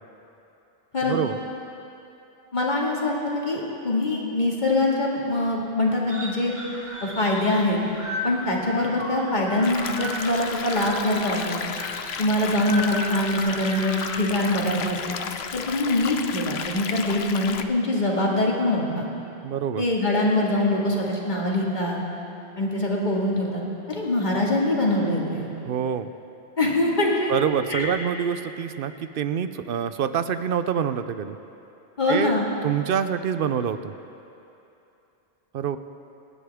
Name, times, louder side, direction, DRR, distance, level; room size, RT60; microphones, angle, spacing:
voice 1, 1.0-1.4 19.4-19.8 25.6-26.1 27.3-31.4 32.1-32.3 32.6-33.9 35.5-35.8, right 8 dB, 65° right, 11 dB, 0.8 m, -26 dB
voice 2, 2.5-6.5 7.0-7.8 8.2-11.6 12.2-15.1 15.5-19.1 19.8-22.0 22.6-23.6 23.9-25.5 26.6-27.3 27.7-27.9 32.0-32.5, left 1 dB, 45° left, -3 dB, 2.1 m, -23 dB
sound 1, 6.1-14.1, left 1 dB, 30° right, 1.7 m, -36 dB
sound 2, 9.6-17.6, left 7 dB, 75° left, 0.9 m, -33 dB
26.5 x 10.0 x 3.6 m, 2.8 s
omnidirectional pair, 1.1 m